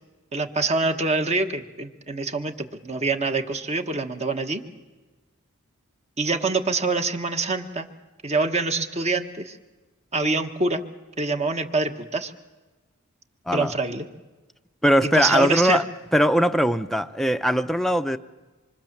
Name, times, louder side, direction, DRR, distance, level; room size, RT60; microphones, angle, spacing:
voice 1, 0.3-4.6 6.2-7.9 8.2-9.6 10.1-10.8 11.2-12.3 13.5-14.1 15.0-15.8, right 3 dB, 30° right, 1.4 m, -25 dB
voice 2, 14.8-15.8 16.1-18.2, equal, ahead, 0.7 m, -20 dB
26.0 x 23.5 x 7.4 m
head